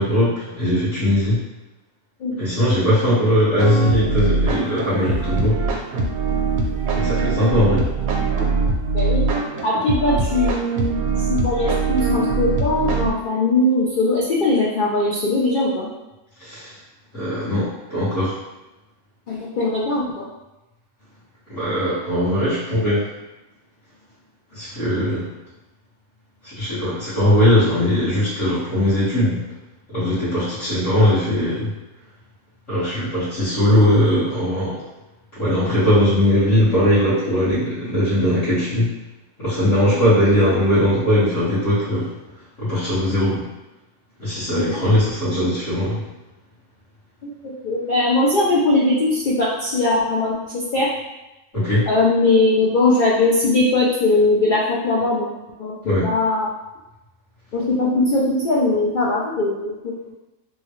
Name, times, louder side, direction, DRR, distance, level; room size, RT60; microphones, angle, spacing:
voice 1, 0.0-1.4 2.4-5.8 6.9-7.9 16.4-16.8 17.1-18.4 21.5-23.1 24.5-25.3 26.4-29.4 29.9-31.7 32.7-34.8 35.3-38.9 39.4-42.1 42.6-43.4 44.2-46.0 51.5-51.9 55.8-56.1, left 1 dB, 60° left, -15 dB, 1.7 m, -19 dB
sound 1, 3.6-13.1, right 4 dB, 80° right, 1.1 m, -22 dB
voice 2, 8.9-9.3 9.6-11.0 11.3-15.9 19.3-20.3 44.5-44.8 47.2-50.4 50.7-50.9 51.9-56.5 57.5-60.1, left 2 dB, 75° left, -5 dB, 0.4 m, -20 dB
3.6 x 2.2 x 3.0 m, 1.0 s
omnidirectional pair, 1.5 m